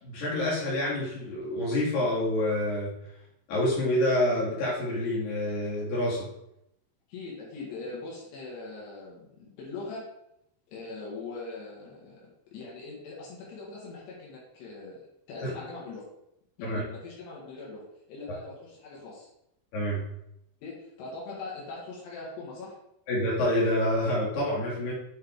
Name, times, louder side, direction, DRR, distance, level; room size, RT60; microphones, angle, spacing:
voice 1, 0.0-2.9 3.5-6.3 15.4-15.5 16.6-16.8 19.7-20.1 23.1-24.9, left 1 dB, 60° left, -6 dB, 3.5 m, -27 dB
voice 2, 7.1-10.0 10.7-16.1 16.6-19.3 20.6-22.8, left 3 dB, 85° left, -4 dB, 3.8 m, -41 dB
8.5 x 4.2 x 3.6 m, 0.79 s
omnidirectional pair, 4.8 m